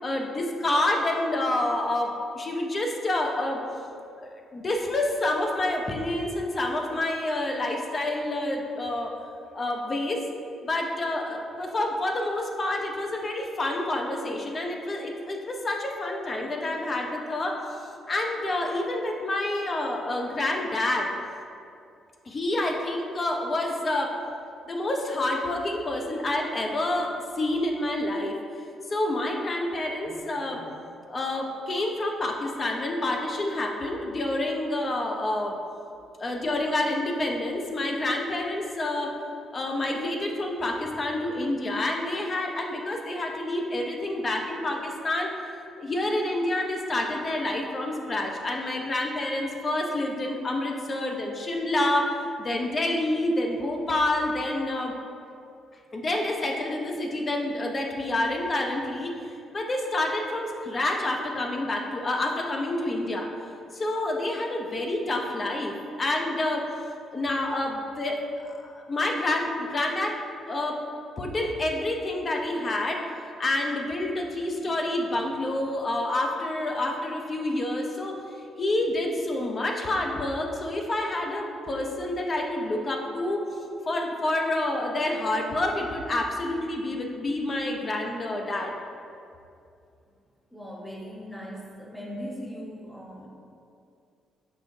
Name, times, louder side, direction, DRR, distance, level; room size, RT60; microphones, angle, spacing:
voice 1, 0.0-3.6 4.2-9.1 9.5-10.3 10.6-17.8 18.1-21.1 22.3-24.1 24.7-28.4 28.9-30.7 31.1-35.6 36.2-39.1 39.5-45.3 45.8-52.1 52.4-54.9 55.9-59.2 59.5-63.3 63.7-66.6 67.1-68.2 68.4-70.1 70.5-70.8 71.2-73.0 73.4-78.2 78.6-83.4 83.9-88.7, left 1 dB, 35° left, 1 dB, 0.5 m, -28 dB
voice 2, 90.5-93.3, equal, 5° left, -3 dB, 0.9 m, -39 dB
5.4 x 3.3 x 2.6 m, 2.5 s
cardioid pair, 90°, 0 cm